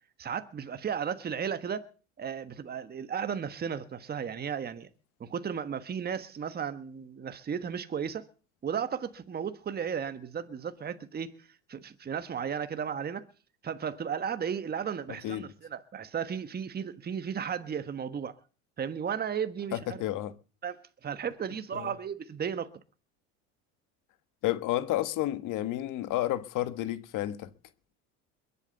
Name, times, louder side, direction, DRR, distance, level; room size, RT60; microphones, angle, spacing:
voice 1, 0.2-1.8 2.2-4.9 5.2-8.2 8.6-11.4 11.7-13.2 13.6-18.3 18.8-20.0 20.6-22.7, right 7 dB, 25° right, 1.3 m, -34 dB
voice 2, 19.7-20.3 21.7-21.9 24.4-27.5, left 14 dB, 60° left, 1.3 m, -31 dB
22.0 x 8.4 x 6.9 m
supercardioid pair, 100°, 36 cm